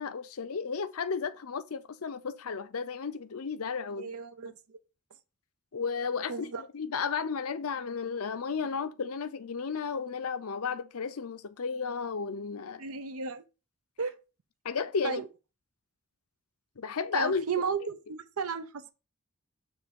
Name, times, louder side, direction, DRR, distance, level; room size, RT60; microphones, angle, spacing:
voice 1, 0.0-4.1 5.7-12.8 14.6-15.2 16.8-17.5 17.8-17.9, left 5 dB, 80° left, 0.6 m, -33 dB
voice 2, 4.0-4.8 6.3-6.6 12.8-13.4 14.0-14.1 15.0-15.3 17.1-18.9, right 5 dB, 75° right, 0.6 m, -34 dB
7.1 x 3.2 x 5.3 m
head